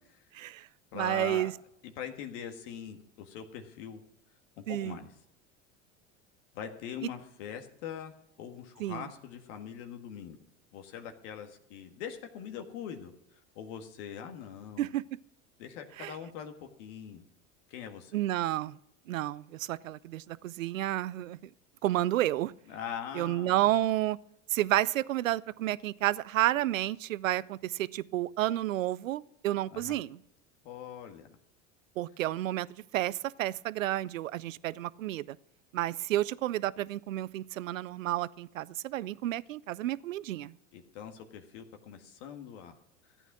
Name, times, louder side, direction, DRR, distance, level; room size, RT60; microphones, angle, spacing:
voice 1, 0.3-0.7 0.9-1.5 4.7-5.0 8.8-9.0 14.8-15.0 16.0-16.1 18.1-18.8 19.1-21.4 21.8-22.5 23.1-24.2 24.5-30.2 32.0-35.4 35.7-40.5, right 14 dB, 90° right, 20 dB, 0.5 m, -31 dB
voice 2, 0.9-1.5 1.8-4.0 4.6-5.1 6.5-8.1 8.4-10.4 10.7-14.9 15.6-17.2 17.7-18.2 22.7-23.8 29.7-29.9 30.6-31.4 40.7-42.7 43.0-43.1, left 8 dB, 65° left, 6 dB, 1.8 m, -42 dB
13.5 x 9.1 x 6.1 m, 0.76 s
hypercardioid pair, 90°, 39 cm